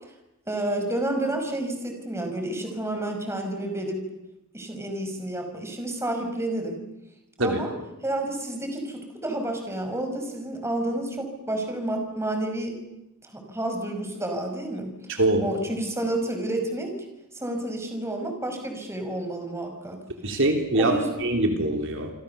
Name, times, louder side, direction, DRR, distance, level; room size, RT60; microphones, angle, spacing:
voice 1, 0.5-4.0 4.5-6.8 7.4-7.7 8.0-12.8 13.2-15.0 15.4-16.9 17.3-20.0 20.7-21.1, right 1 dB, 10° right, 4 dB, 5.4 m, -30 dB
voice 2, 15.1-15.4 20.2-22.1, right 2 dB, 60° right, 4 dB, 3.4 m, -23 dB
28.0 x 26.0 x 7.0 m, 0.93 s
head